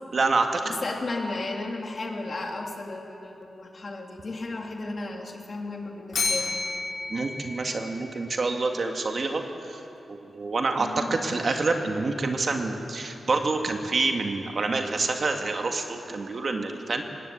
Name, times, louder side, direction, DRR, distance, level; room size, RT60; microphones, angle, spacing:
voice 1, 0.1-0.6 7.1-9.8 10.1-17.0, right 3 dB, 50° right, 4 dB, 1.9 m, -27 dB
voice 2, 0.6-6.6 10.8-11.2, left 2 dB, 45° left, 1 dB, 2.9 m, -34 dB
Bell, 6.1-8.3, left 3 dB, 70° left, 5.4 m, -31 dB
20.0 x 18.0 x 8.5 m, 2.9 s
cardioid pair, 90°, 0 cm